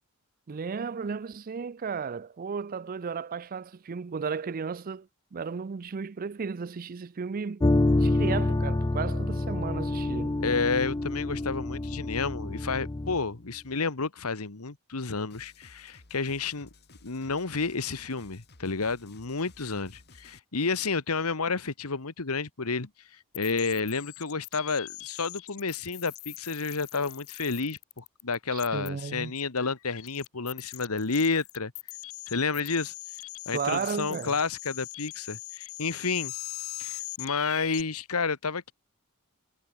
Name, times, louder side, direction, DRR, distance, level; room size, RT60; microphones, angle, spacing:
voice 1, 0.5-10.3 28.5-29.3 33.5-34.4, right 5 dB, 40° right, 0.5 m, -34 dB
sound 1, 7.6-13.2, left 2 dB, 20° left, 0.5 m, -27 dB
voice 2, 10.4-16.7 17.0-31.7 32.3-32.9 33.4-36.3 36.8-38.7, left 4 dB, 85° left, 1.5 m, -30 dB
sound 2, 15.3-20.4, left 3 dB, 50° left, 2.3 m, -55 dB
sound 3, 23.3-37.8, left 19 dB, 65° left, 0.6 m, -41 dB
head